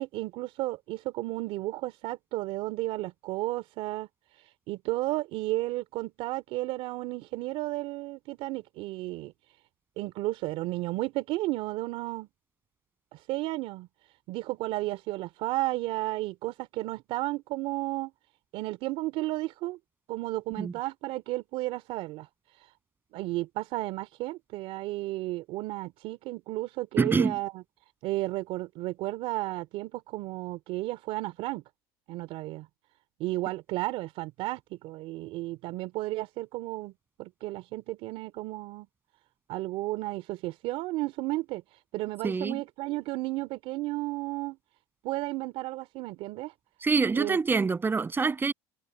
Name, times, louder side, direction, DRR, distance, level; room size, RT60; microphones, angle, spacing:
voice 1, 0.0-4.1 4.7-9.3 10.0-12.3 13.1-13.9 14.3-18.1 18.5-19.8 20.1-22.3 23.1-27.6 28.0-31.6 32.1-32.7 33.2-36.9 37.2-38.9 39.5-41.6 41.9-44.6 45.0-46.5 47.1-47.4, right 18 dB, 65° right, 2.9 m, -33 dB
voice 2, 27.0-27.3 42.2-42.6 46.8-48.5, right 4 dB, 20° right, 7.4 m, -25 dB
supercardioid pair, 115°, 11 cm